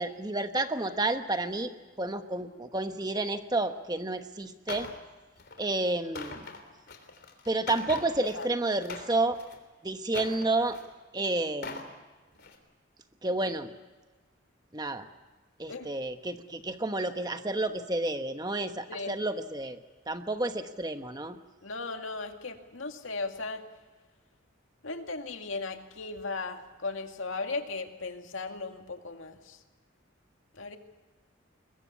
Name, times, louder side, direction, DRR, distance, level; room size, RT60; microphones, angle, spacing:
voice 1, 0.0-1.7 2.0-4.9 5.6-6.5 7.5-9.4 9.8-10.8 11.1-11.9 13.2-13.7 14.7-15.1 15.6-21.4, right 2 dB, 20° right, 8 dB, 1.1 m, -30 dB
sound 1, 4.7-5.0 5.4-5.6 6.0-8.5 8.8-9.6 10.1-10.9 11.4-11.9 12.3-12.6, left 3 dB, 55° left, 3.4 m, -42 dB
voice 2, 21.6-23.6 24.8-29.6 30.5-30.8, left 3 dB, 80° left, 5 dB, 2.2 m, -37 dB
22.0 x 21.5 x 8.4 m, 1.3 s
head